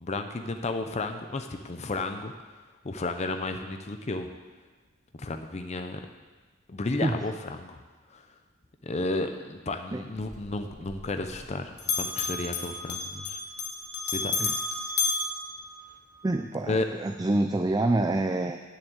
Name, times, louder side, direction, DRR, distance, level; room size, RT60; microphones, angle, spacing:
voice 1, 0.0-2.3 2.8-4.3 5.1-6.0 6.7-7.8 8.1-8.2 8.8-13.4 14.1-14.3 16.7-16.9, left 2 dB, 30° left, 6 dB, 0.6 m, -32 dB
Bell, 10.2-11.5 11.8-16.3, left 4 dB, 50° left, 1.4 m, -32 dB
voice 2, 16.2-18.6, right 2 dB, 15° right, 5 dB, 0.4 m, -27 dB
9.6 x 7.2 x 8.0 m, 1.3 s
head